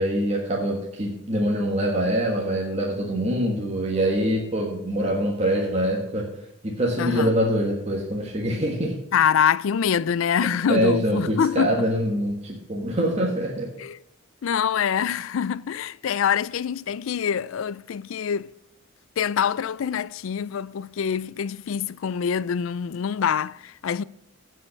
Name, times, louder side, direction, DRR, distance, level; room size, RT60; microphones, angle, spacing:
voice 1, 0.0-6.3 6.6-9.0 10.7-13.7, equal, 30° right, 1.4 m, -24 dB
voice 2, 7.0-7.3 9.1-11.9 13.8-14.0 14.4-18.5 19.2-24.0, left 7 dB, 70° left, 0.4 m, -25 dB
15.0 x 5.6 x 5.7 m
head